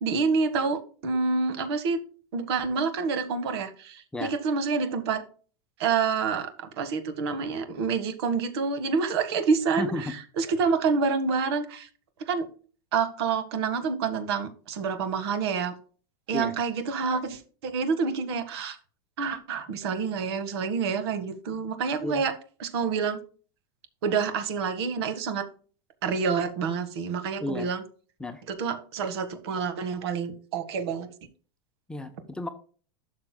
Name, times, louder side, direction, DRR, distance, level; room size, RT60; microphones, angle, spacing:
voice 1, 0.0-2.0 2.3-5.2 5.8-11.9 12.2-12.5 12.9-15.7 16.3-18.8 19.2-22.3 22.6-23.2 24.0-25.5 26.0-27.8 28.5-31.1, right 5 dB, 70° right, 9 dB, 1.5 m, -28 dB
voice 2, 9.8-10.1 16.3-16.5 22.0-22.2 27.4-27.7 28.2-28.4 31.9-32.5, left 2 dB, 5° left, 6 dB, 0.7 m, -32 dB
12.0 x 6.4 x 2.2 m, 0.39 s
supercardioid pair, 150°, 14 cm